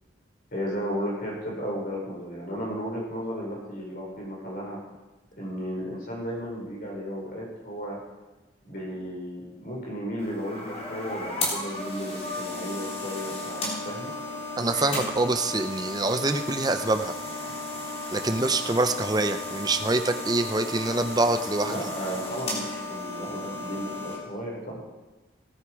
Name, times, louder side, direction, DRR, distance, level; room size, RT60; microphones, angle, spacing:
voice 1, 0.5-4.8 5.3-8.0 8.7-14.1 21.6-24.8, equal, 50° left, -3 dB, 5.2 m, -34 dB
sound 1, 10.2-24.2, left 2 dB, 35° left, 3.3 m, -34 dB
voice 2, 14.6-17.1 18.1-21.8, right 2 dB, 20° right, 8 dB, 0.7 m, -25 dB
17.5 x 9.7 x 4.8 m, 1.1 s
head